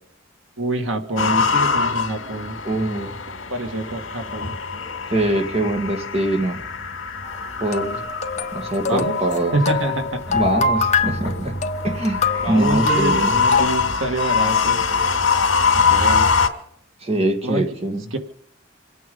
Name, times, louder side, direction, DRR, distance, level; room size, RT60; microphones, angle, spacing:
voice 1, 0.6-2.6 3.5-4.5 8.9-9.2 9.5-10.4 12.4-15.3 15.7-16.3 17.4-17.7 18.1-18.2, right 2 dB, 80° right, 5 dB, 2.1 m, -26 dB
sound 1, 1.2-16.5, left 5 dB, 65° left, 2.7 m, -23 dB
voice 2, 2.6-3.1 5.1-6.6 7.6-8.0 8.5-9.6 10.3-11.6 11.8-13.3 17.0-18.1, right 1 dB, 30° right, 4 dB, 2.0 m, -23 dB
sound 2, 7.2-13.6, left 4 dB, 35° left, 1.3 m, -24 dB
28.0 x 9.3 x 5.4 m, 0.67 s
head